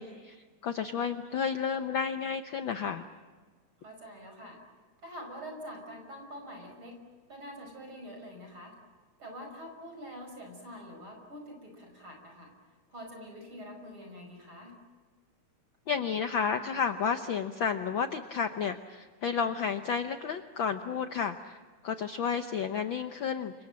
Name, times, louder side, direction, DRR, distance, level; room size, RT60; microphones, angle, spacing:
voice 1, 0.0-3.0 15.9-23.5, left 6 dB, 75° left, 8 dB, 1.1 m, -32 dB
voice 2, 3.8-4.6 5.0-7.0 7.3-8.7 9.2-12.5 12.9-14.8, equal, 40° right, 4 dB, 6.2 m, -45 dB
29.5 x 26.0 x 7.6 m, 1.4 s
omnidirectional pair, 3.5 m